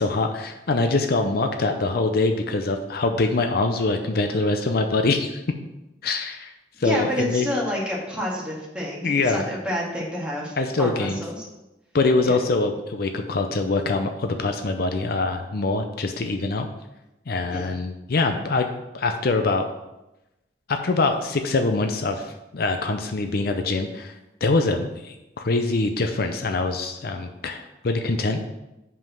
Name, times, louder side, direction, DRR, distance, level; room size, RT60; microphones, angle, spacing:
voice 1, 0.0-5.4 6.0-6.5 6.8-7.4 9.0-9.4 10.6-11.2 11.9-16.7 17.3-18.7 18.9-19.7 20.7-24.1 24.4-28.4, left 3 dB, 60° left, 6 dB, 0.6 m, -24 dB
voice 2, 6.8-11.4 12.2-12.4 17.5-17.7, left 1 dB, 5° right, -5 dB, 2.0 m, -29 dB
5.5 x 5.3 x 6.2 m, 0.95 s
head